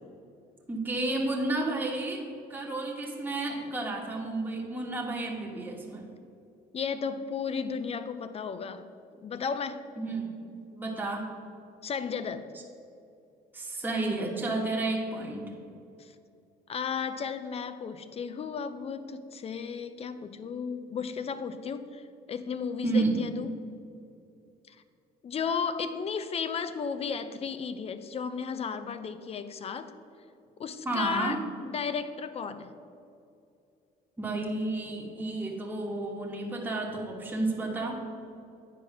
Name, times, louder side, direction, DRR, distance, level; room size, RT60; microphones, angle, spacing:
voice 1, 0.7-2.2 2.5-6.1 10.0-10.3 10.7-11.3 13.5-15.5 22.8-23.2 30.8-31.4 34.2-38.0, right 2 dB, 10° right, -2 dB, 1.3 m, -31 dB
voice 2, 6.7-8.9 9.2-9.8 11.8-12.5 16.0-16.1 16.7-22.0 22.3-23.5 24.7-24.8 25.2-29.9 30.6-31.4 31.6-32.7, left 6 dB, 35° left, 11 dB, 0.6 m, -34 dB
9.0 x 4.7 x 5.9 m, 2.6 s
cardioid pair, 110°, 17 cm